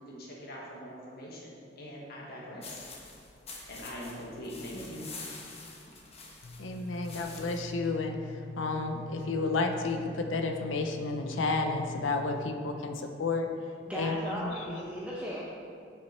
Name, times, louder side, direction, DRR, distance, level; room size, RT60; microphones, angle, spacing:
voice 1, 0.0-2.9 3.7-5.1, equal, 55° left, -4 dB, 1.4 m, -43 dB
sound 1, 2.6-7.7, left 3 dB, 35° left, 1.1 m, -47 dB
voice 2, 6.4-13.5 13.9-14.8, left 3 dB, 85° left, 5 dB, 0.5 m, -31 dB
voice 3, 13.9-15.6, equal, 5° right, -7 dB, 0.8 m, -37 dB
7.3 x 6.2 x 4.3 m, 2.4 s
head